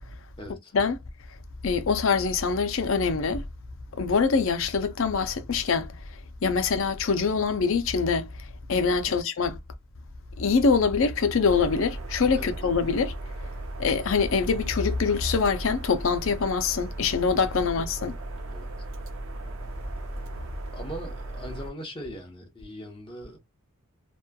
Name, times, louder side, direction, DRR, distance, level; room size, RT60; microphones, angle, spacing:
voice 1, 0.4-0.8 9.1-9.2 12.3-12.5 18.5-18.7 20.7-23.4, equal, 25° left, 0.8 m, -40 dB
voice 2, 1.6-3.4 4.0-6.0 6.4-8.3 8.7-9.6 10.4-13.1 13.8-18.1, left 5 dB, 60° left, 0.5 m, -24 dB
sound 1, 11.4-21.7, right 2 dB, 65° right, 0.6 m, -37 dB
3.0 x 2.2 x 2.3 m
head